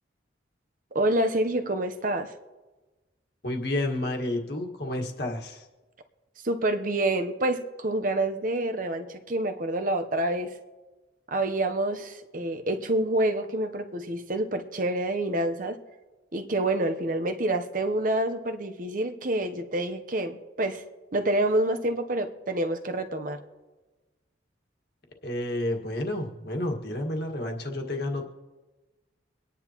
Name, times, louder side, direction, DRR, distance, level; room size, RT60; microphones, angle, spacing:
voice 1, 0.9-2.3 6.4-10.5 11.3-15.8 16.3-20.8 21.1-23.4, right 1 dB, 45° right, 7 dB, 0.9 m, -27 dB
voice 2, 3.4-5.7 25.2-28.3, left 1 dB, 55° left, 2 dB, 1.7 m, -30 dB
24.5 x 10.0 x 3.0 m, 1.2 s
head